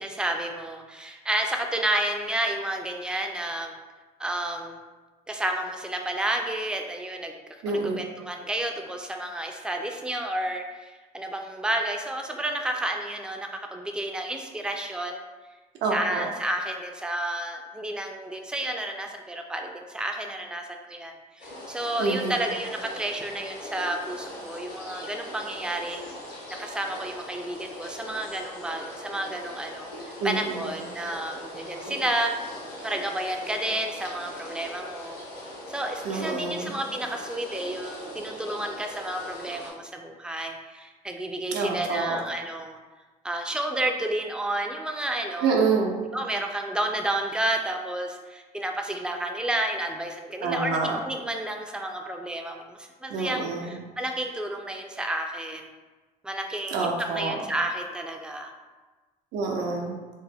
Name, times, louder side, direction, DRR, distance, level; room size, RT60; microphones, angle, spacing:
voice 1, 0.0-3.7 4.2-4.8 5.3-7.3 7.6-15.2 15.9-26.0 26.5-32.3 32.8-35.2 35.7-42.8 43.2-45.5 46.1-55.7 56.2-58.5, right 1 dB, 5° right, 3 dB, 0.3 m, -31 dB
voice 2, 7.6-8.0 15.8-16.3 22.0-22.4 30.2-30.7 36.0-36.7 41.5-42.2 45.4-46.0 50.4-51.0 53.1-53.8 56.7-57.3 59.3-60.0, right 4 dB, 85° right, 0 dB, 0.7 m, -27 dB
sound 1, 21.4-39.7, left 1 dB, 80° left, 1.5 m, -41 dB
3.5 x 2.1 x 3.3 m, 1.3 s
cardioid pair, 110°, 17 cm